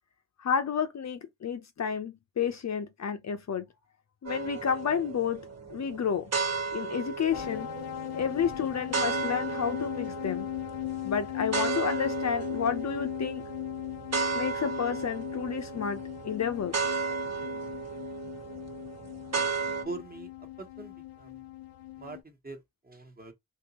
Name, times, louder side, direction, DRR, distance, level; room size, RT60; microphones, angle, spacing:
voice 1, 0.4-3.7 4.2-5.4 5.7-6.3 6.7-7.7 8.1-10.5 11.0-13.4 14.3-16.8, left 7 dB, 45° left, 0.7 m, -31 dB
sound 1, 4.2-19.8, right 5 dB, 40° right, 1.4 m, -35 dB
sound 2, 7.3-22.2, left 14 dB, 85° left, 0.5 m, -38 dB
voice 2, 19.8-21.4 22.0-23.3, right 3 dB, 25° right, 1.3 m, -43 dB
3.6 x 2.9 x 2.9 m
supercardioid pair, 50°, 39 cm